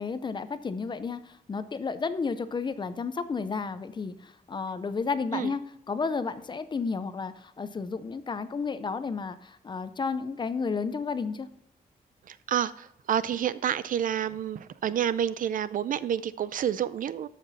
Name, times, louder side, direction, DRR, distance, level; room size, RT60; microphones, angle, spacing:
voice 1, 0.0-5.6 5.9-11.5, left 5 dB, 30° left, 12 dB, 0.6 m, -32 dB
voice 2, 12.3-17.3, right 9 dB, 65° right, 16 dB, 0.5 m, -29 dB
13.0 x 5.9 x 4.1 m, 0.76 s
wide cardioid pair, 170°, 15 cm